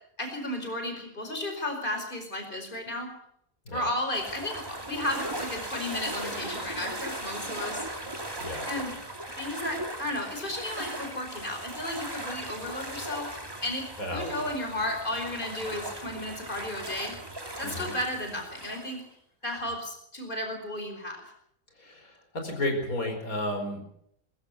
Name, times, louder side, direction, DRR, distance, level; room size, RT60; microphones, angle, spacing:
voice 1, 0.2-3.1 3.7-7.8 8.7-8.9 9.4-13.3 13.6-17.2 17.6-19.0 19.4-21.2, left 1 dB, 35° left, 5 dB, 5.1 m, -34 dB
sound 1, 4.1-19.0, right 1 dB, 15° right, 2.7 m, -38 dB
voice 2, 14.0-14.4 17.6-17.9 21.8-23.8, left 1 dB, 85° left, 4 dB, 5.0 m, -33 dB
22.5 x 15.0 x 8.3 m, 0.73 s
omnidirectional pair, 1.5 m